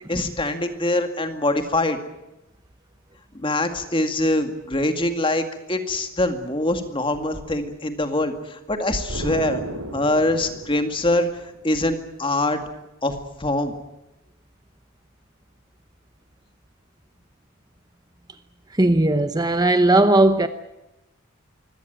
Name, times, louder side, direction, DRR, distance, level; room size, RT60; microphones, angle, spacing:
voice 1, 0.1-2.0 3.3-9.6 9.9-11.3 11.6-12.6 13.0-13.1 13.4-13.7, left 1 dB, 25° left, 2.2 m, -23 dB
Explosion, 9.1-11.8, right 1 dB, 90° right, 3.2 m, -34 dB
voice 2, 18.8-20.5, right 2 dB, 20° right, 0.8 m, -17 dB
24.0 x 17.5 x 9.3 m
head